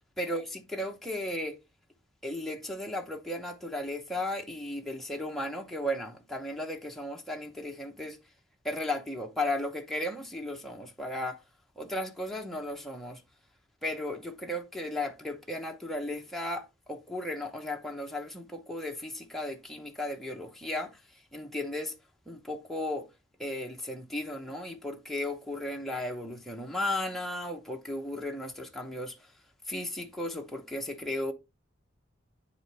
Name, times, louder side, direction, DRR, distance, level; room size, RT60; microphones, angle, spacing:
voice 1, 0.2-1.6 2.2-8.2 8.6-11.4 11.8-13.2 13.8-20.9 21.3-21.9 22.3-23.1 23.4-29.2 29.7-31.3, left 1 dB, ahead, 0.8 m, -35 dB
9.7 x 4.1 x 3.3 m
head